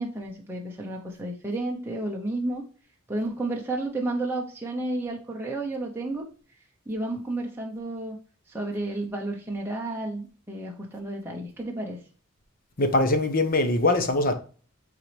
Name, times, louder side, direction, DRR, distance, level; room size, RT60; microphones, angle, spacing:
voice 1, 0.0-2.6 3.1-6.2 6.9-8.2 8.5-12.0, right 2 dB, 10° right, 0.8 m, -31 dB
voice 2, 12.8-14.3, left 2 dB, 40° left, 1.0 m, -22 dB
9.0 x 4.0 x 3.3 m
head